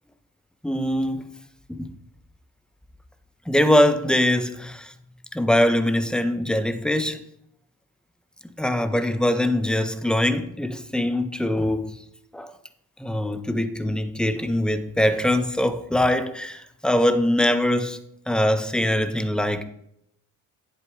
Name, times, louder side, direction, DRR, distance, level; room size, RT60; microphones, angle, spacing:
voice 1, 0.6-1.2 1.7-1.9 3.5-4.9 5.3-7.2 8.6-11.9 12.3-12.5 13.0-18.0 18.3-19.6, left 1 dB, ahead, 1.2 m, -22 dB
10.5 x 8.2 x 3.4 m
hypercardioid pair, 55°, 45 cm